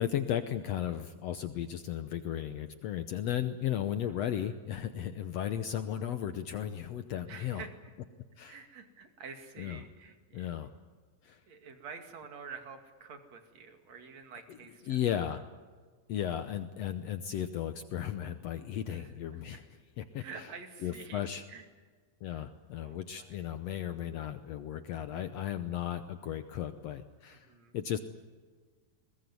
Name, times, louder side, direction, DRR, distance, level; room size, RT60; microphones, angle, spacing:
voice 1, 0.0-7.6 8.4-8.6 9.6-9.8 10.3-10.7 11.2-11.4 14.9-15.4 16.1-19.6 20.0-20.5 20.8-21.4 22.2-27.5 27.7-28.0, left 10 dB, 90° left, 10 dB, 1.4 m, -35 dB
voice 2, 7.3-7.9 8.4-10.7 11.5-15.0 18.9-19.6 20.2-21.7 22.3-22.4 22.8-23.5 27.3-27.7, right 5 dB, 50° right, 6 dB, 3.4 m, -49 dB
21.5 x 21.0 x 9.5 m, 1.5 s
omnidirectional pair, 4.2 m